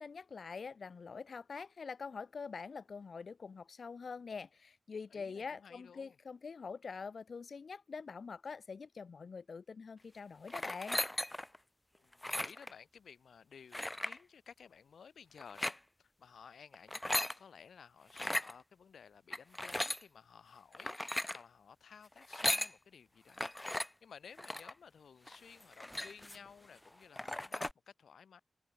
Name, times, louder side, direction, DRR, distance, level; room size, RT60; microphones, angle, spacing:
voice 1, 0.0-11.0, left 5 dB, 60° left, 0.5 m, -45 dB
voice 2, 5.1-6.2 11.9-28.4, left 6 dB, 90° left, 3.4 m, -56 dB
sound 1, 10.5-11.6 12.1-12.7 13.7-14.2 15.4-15.8 16.7-17.4 18.1-18.5 19.3-20.0 20.7-21.4 22.2-22.7 23.4-23.9 24.4-24.7 25.3-25.4 25.6-26.5 26.9-27.0 27.2-27.7, left 1 dB, 15° left, 0.7 m, -37 dB
wide cardioid pair, 90°, 0 cm